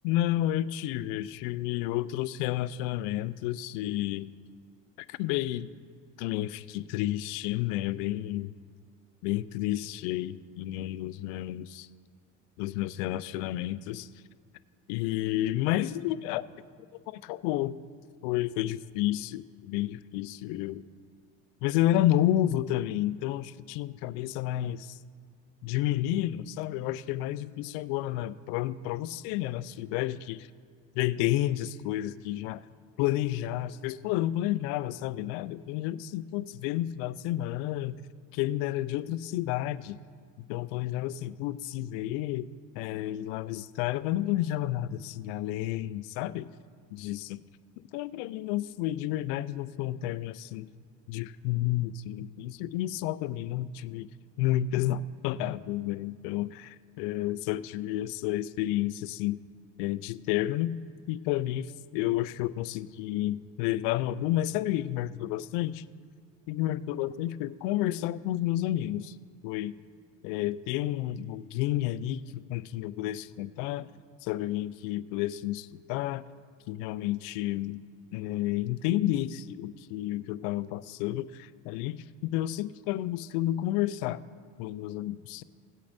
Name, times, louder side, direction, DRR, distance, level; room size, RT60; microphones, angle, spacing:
voice 1, 0.0-4.3 5.0-5.7 6.2-8.5 9.2-11.9 12.6-14.1 14.9-16.4 17.1-17.8 18.2-20.8 21.6-25.0 25.6-30.5 30.9-32.6 33.0-38.0 38.3-40.0 40.4-42.5 42.8-46.5 46.9-47.4 47.9-50.7 51.1-54.1 54.4-59.4 59.8-60.8 61.1-65.8 66.5-69.1 69.4-69.7 70.2-73.9 74.2-76.2 76.7-77.8 78.1-84.2 84.6-85.4, left 14 dB, 80° left, 16 dB, 0.5 m, -31 dB
17.0 x 8.4 x 2.7 m, 2.1 s
supercardioid pair, 70°, 41 cm